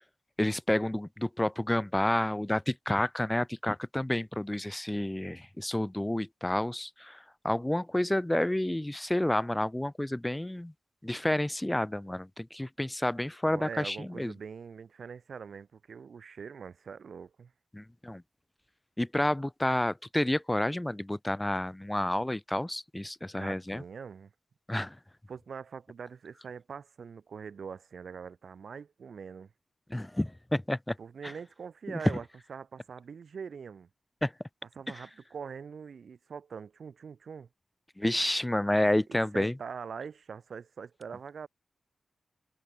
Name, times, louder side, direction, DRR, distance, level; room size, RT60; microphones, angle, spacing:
voice 1, 0.4-10.7 11.0-14.3 17.7-18.2 19.0-23.8 24.7-24.9 29.9-30.9 31.2-31.3 34.2-34.3 34.9-35.0 38.0-39.5, left 1 dB, 15° left, 1.7 m, -30 dB
voice 2, 13.5-17.5 23.3-24.3 25.3-29.5 31.0-33.9 34.8-37.5 39.1-41.5, right 6 dB, 75° right, 7.0 m, -43 dB
cardioid pair, 55°, 0 cm